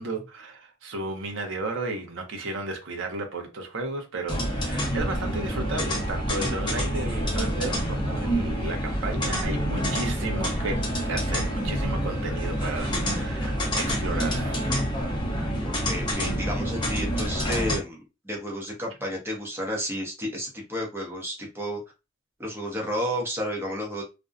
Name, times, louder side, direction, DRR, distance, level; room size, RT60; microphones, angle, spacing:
voice 1, 0.0-14.8, right 2 dB, 70° right, 0.7 m, -34 dB
sound 1, 4.3-17.8, equal, 25° left, 0.7 m, -27 dB
voice 2, 15.6-21.8 22.4-24.0, equal, 10° right, 0.7 m, -32 dB
2.5 x 2.1 x 2.4 m
head